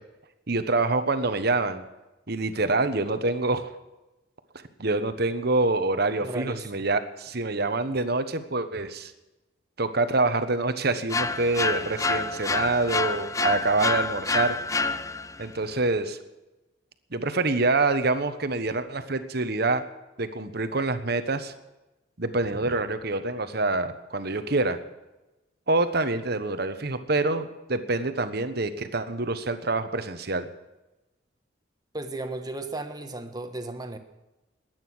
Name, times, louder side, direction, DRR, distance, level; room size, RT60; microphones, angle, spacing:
voice 1, 0.5-1.8 2.3-3.7 4.8-9.1 9.8-14.6 15.4-16.2 17.1-19.8 20.2-21.5 22.2-24.8 25.7-30.5, right 3 dB, 55° right, 10 dB, 1.3 m, -26 dB
voice 2, 6.2-6.7 31.9-34.0, right 2 dB, 20° right, 7 dB, 1.3 m, -35 dB
sound 1, 11.1-15.4, left 3 dB, 15° left, 0.5 m, -27 dB
21.0 x 9.4 x 6.3 m, 1.0 s
head